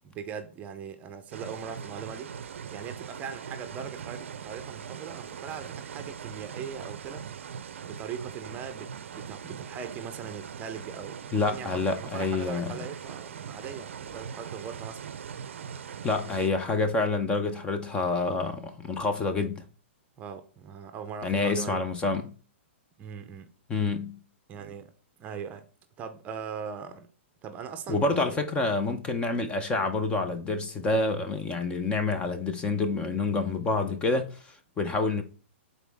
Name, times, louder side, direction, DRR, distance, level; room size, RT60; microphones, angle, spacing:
voice 1, 0.0-2.3 2.7-7.2 7.8-15.0 20.2-21.9 23.0-23.5 24.5-24.9 25.2-25.7 26.0-27.1 27.4-28.4, right 7 dB, 20° right, 0.7 m, -40 dB
sound 1, 1.3-16.5, right 7 dB, 80° right, 0.5 m, -41 dB
voice 2, 11.3-12.8 16.0-19.6 21.2-22.4 23.7-24.2 27.9-35.2, left 3 dB, 15° left, 0.7 m, -28 dB
8.1 x 4.1 x 3.5 m
hypercardioid pair, 145°, 7 cm